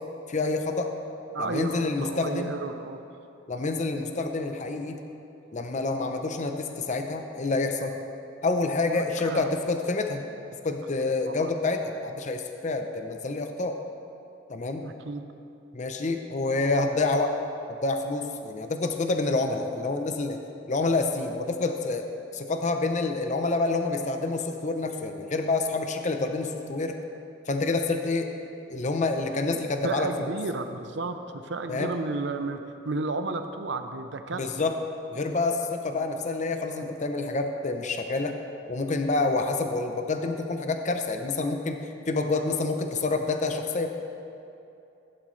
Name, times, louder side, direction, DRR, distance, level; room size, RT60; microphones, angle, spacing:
voice 1, 0.3-0.9 1.4-2.5 3.5-5.0 5.5-8.0 8.4-10.2 10.6-13.8 14.5-14.9 15.7-17.4 17.7-20.4 20.7-27.0 27.5-28.3 28.7-30.3 31.7-31.9 34.4-34.8 35.1-38.4 38.7-43.9, left 3 dB, 40° left, 5 dB, 0.6 m, -28 dB
voice 2, 1.3-3.0 8.9-9.5 11.3-11.5 14.8-15.3 29.8-34.7, right 3 dB, 65° right, 8 dB, 0.7 m, -33 dB
15.5 x 11.5 x 3.2 m, 2.8 s
head